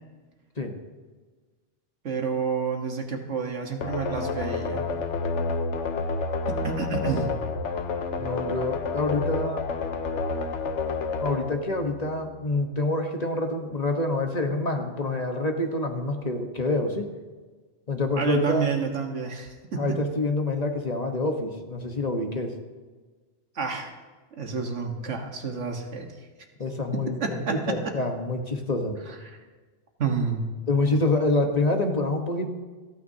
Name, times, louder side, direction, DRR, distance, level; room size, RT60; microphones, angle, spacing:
voice 1, 2.0-4.9 6.5-7.3 18.2-20.0 23.6-23.9 24.3-26.1 26.9-27.9 29.1-29.4 30.0-30.5, right 5 dB, 85° right, 3 dB, 1.7 m, -29 dB
sound 1, 3.8-12.5, left 4 dB, 80° left, 1.2 m, -30 dB
voice 2, 8.2-9.6 11.2-17.1 17.9-18.7 19.8-22.5 26.6-29.0 30.7-32.5, left 2 dB, 35° left, 4 dB, 1.2 m, -27 dB
27.5 x 9.3 x 2.8 m, 1.4 s
omnidirectional pair, 1.2 m